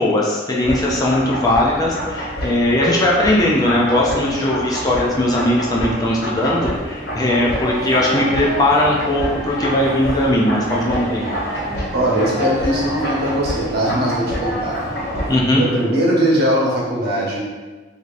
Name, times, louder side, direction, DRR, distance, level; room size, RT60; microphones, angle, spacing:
voice 1, 0.0-11.3 15.3-15.6, left 1 dB, 20° left, -4 dB, 0.4 m, -18 dB
sound 1, 0.6-15.4, equal, 55° left, 1.5 m, -27 dB
voice 2, 11.9-14.8 15.5-17.4, right 1 dB, 50° right, -5 dB, 1.0 m, -20 dB
4.8 x 2.8 x 2.5 m, 1.3 s
head